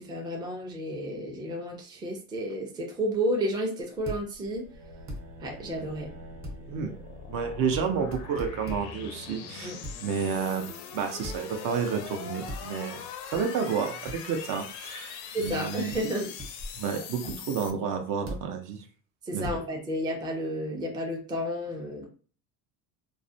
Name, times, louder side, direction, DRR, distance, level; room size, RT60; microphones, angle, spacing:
voice 1, 0.0-4.7 5.4-6.1 9.6-9.8 15.3-16.3 17.2-17.3 19.3-22.1, equal, 10° right, 1 dB, 0.4 m, -31 dB
sound 1, 4.0-17.7, left 7 dB, 85° left, 0.5 m, -42 dB
sound 2, 4.1-4.2 5.1-5.2 6.4-6.6 7.7-7.9 8.1-8.8 9.8-10.0 11.2-11.4 12.5-12.6 13.3-13.4 14.1-14.2 15.4-15.6 15.9-16.0 16.4-16.7 17.3-17.4 18.3-18.4 19.4-19.6, equal, 35° right, 0.8 m, -37 dB
sound 3, 4.4-9.8, right 2 dB, 90° right, 0.8 m, -50 dB
voice 2, 7.3-9.7 10.0-13.0 13.3-16.0 16.8-18.8 19.3-19.5, right 6 dB, 60° right, 5 dB, 0.6 m, -30 dB
2.3 x 2.1 x 2.6 m, 0.40 s
cardioid pair, 135°, 37 cm